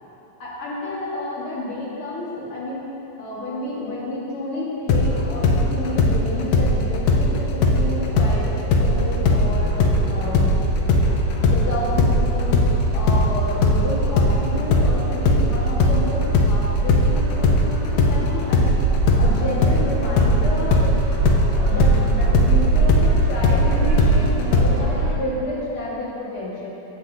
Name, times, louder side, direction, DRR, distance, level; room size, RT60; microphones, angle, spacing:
voice 1, 0.4-9.7 10.1-10.6 11.4-20.9 21.2-26.7, left 1 dB, 55° left, -7 dB, 1.6 m, -30 dB
sound 1, 4.9-8.4 8.7-16.6 16.9-24.7, left 3 dB, 85° left, 1.8 m, -19 dB
sound 2, 6.5-25.1, right 3 dB, 85° right, 3.8 m, -24 dB
14.0 x 7.4 x 2.6 m, 2.9 s
omnidirectional pair, 4.3 m